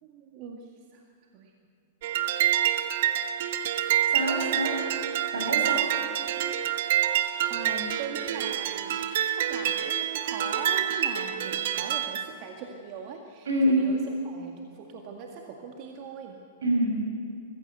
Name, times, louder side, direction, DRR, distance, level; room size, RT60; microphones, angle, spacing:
voice 1, 0.0-1.1 1.3-1.5 7.5-16.4, right 5 dB, 50° right, 1 dB, 2.0 m, -41 dB
sound 1, 2.0-12.2, right 11 dB, 65° right, 1.1 m, -27 dB
voice 2, 4.1-4.8 5.3-5.9 13.5-13.9 16.6-17.0, right 1 dB, 85° right, 1 dB, 6.0 m, -25 dB
22.0 x 15.0 x 8.0 m, 2.2 s
hypercardioid pair, 110°, 0 cm